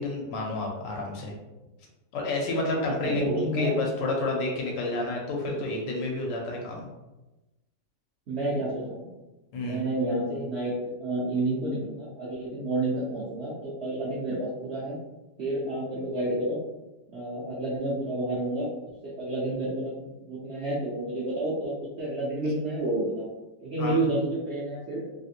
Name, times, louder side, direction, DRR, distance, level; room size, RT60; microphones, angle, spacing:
voice 1, 0.0-1.3 2.1-6.8 9.5-9.8 23.8-24.0, left 2 dB, 85° left, 0 dB, 1.4 m, -30 dB
voice 2, 3.0-3.8 5.4-5.6 8.3-9.1 9.6-15.0 15.4-16.6 17.1-18.7 19.0-23.3 23.6-25.0, right 1 dB, 65° right, -7 dB, 0.6 m, -30 dB
3.2 x 2.5 x 2.7 m, 1.1 s
omnidirectional pair, 1.9 m